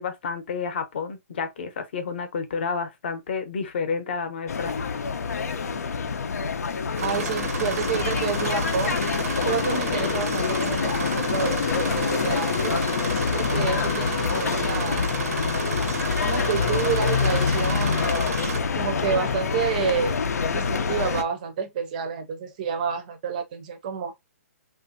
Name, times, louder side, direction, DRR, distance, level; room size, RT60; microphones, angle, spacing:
voice 1, 0.0-4.7, left 5 dB, 45° left, 0.7 m, -30 dB
sound 1, 4.5-21.2, left 5 dB, 85° left, 0.5 m, -26 dB
voice 2, 7.0-9.0 9.4-12.8 13.3-15.1 16.2-18.2 18.7-20.2 20.5-24.1, right 7 dB, 30° right, 0.5 m, -29 dB
sound 2, 7.0-18.6, right 5 dB, 75° right, 0.7 m, -33 dB
3.2 x 2.5 x 2.6 m
hypercardioid pair, 170°, 8 cm